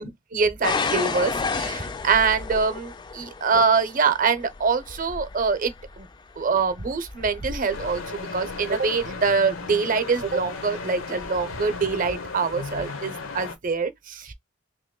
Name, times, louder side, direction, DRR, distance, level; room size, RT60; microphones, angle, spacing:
voice 1, 0.0-6.1 6.4-14.3, right 5 dB, 45° right, 0.7 m, -24 dB
sound 1, 0.6-9.4 10.2-10.6 11.2-11.3, left 4 dB, 20° left, 0.3 m, -33 dB
sound 2, 7.7-13.6, left 4 dB, 85° left, 0.9 m, -35 dB
3.0 x 2.9 x 3.7 m
head